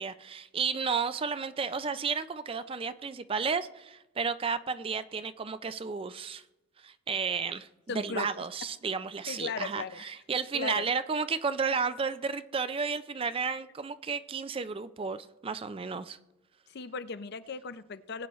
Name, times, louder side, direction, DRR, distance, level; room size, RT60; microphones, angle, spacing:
voice 1, 0.0-6.4 6.8-7.7 8.0-16.2, right 5 dB, 25° right, 12 dB, 0.4 m, -32 dB
voice 2, 7.9-8.3 9.3-10.1 10.5-10.9 16.7-18.3, left 4 dB, 50° left, 13 dB, 0.5 m, -37 dB
20.0 x 8.5 x 3.1 m, 0.99 s
head